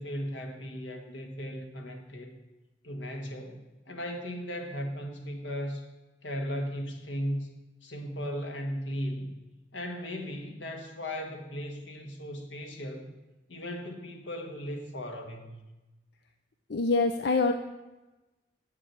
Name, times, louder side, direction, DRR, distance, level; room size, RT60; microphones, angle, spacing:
voice 1, 0.0-2.4 2.8-5.9 6.2-7.5 7.8-9.3 9.7-13.1 13.5-15.6, equal, 85° left, 4 dB, 1.6 m, -37 dB
voice 2, 16.7-17.5, left 3 dB, 60° left, 7 dB, 0.5 m, -25 dB
7.7 x 7.4 x 8.2 m, 1.1 s
head